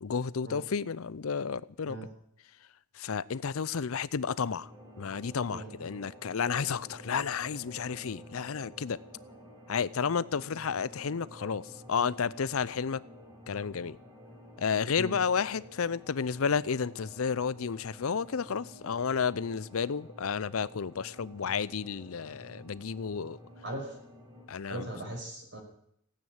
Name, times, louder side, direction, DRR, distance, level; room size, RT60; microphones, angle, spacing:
voice 1, 0.0-2.1 2.9-4.7 5.0-9.0 9.7-13.0 13.5-14.0 14.6-23.4 24.5-24.9, left 6 dB, 70° left, 19 dB, 0.6 m, -32 dB
sound 1, 4.6-24.5, equal, 15° right, 3.8 m, -51 dB
voice 2, 23.6-24.0 24.7-25.6, right 1 dB, 55° right, 1 dB, 5.5 m, -38 dB
17.0 x 9.4 x 9.0 m, 0.70 s
head